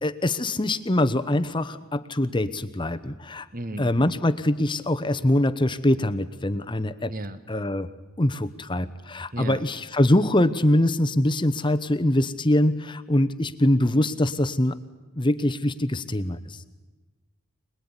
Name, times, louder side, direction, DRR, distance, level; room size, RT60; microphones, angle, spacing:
voice 1, 0.0-3.5 3.8-7.1 7.5-7.9 8.2-14.8 15.2-16.6, left 1 dB, 20° left, 11 dB, 1.0 m, -23 dB
voice 2, 3.5-4.1 7.1-7.4 9.3-9.6, right 1 dB, 40° right, 12 dB, 1.4 m, -34 dB
26.0 x 20.5 x 9.8 m, 1.2 s
head